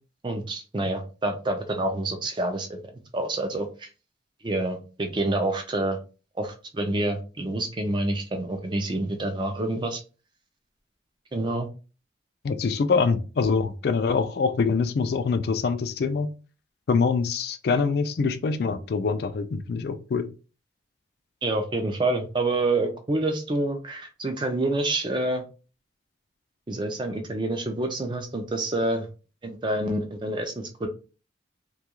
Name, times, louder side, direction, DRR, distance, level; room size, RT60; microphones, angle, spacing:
voice 1, 0.2-2.8 3.1-3.9 4.4-6.0 6.4-10.0 11.3-11.7 17.7-17.8 21.4-25.4 26.7-29.1 29.4-30.9, right 2 dB, 25° right, 0.4 m, -27 dB
voice 2, 12.4-16.3 16.9-20.3, left 5 dB, 55° left, 0.3 m, -24 dB
2.3 x 2.3 x 2.9 m
head